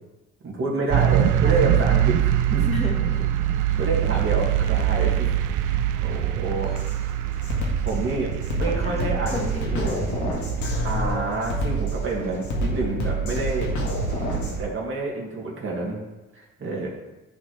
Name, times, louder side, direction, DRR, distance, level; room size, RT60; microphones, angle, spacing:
voice 1, 0.4-2.2 2.5-2.7 3.8-5.3 6.0-6.7 7.8-10.1 10.8-13.7 14.5-16.0 16.3-16.9, right 3 dB, 40° right, -3 dB, 2.1 m, -28 dB
sound 1, 0.9-14.7, right 11 dB, 80° right, 0.5 m, -25 dB
sound 2, 2.1-14.4, equal, 25° right, 2.5 m, -47 dB
voice 2, 2.7-3.3 8.6-10.4 12.5-12.8 14.1-14.5, left 1 dB, 20° left, -1 dB, 1.6 m, -34 dB
Drum kit, 6.8-6.9 7.4-14.6, right 1 dB, 70° left, 1.8 m, -28 dB
11.5 x 4.3 x 3.2 m, 1.1 s
cardioid pair, 90°, 30 cm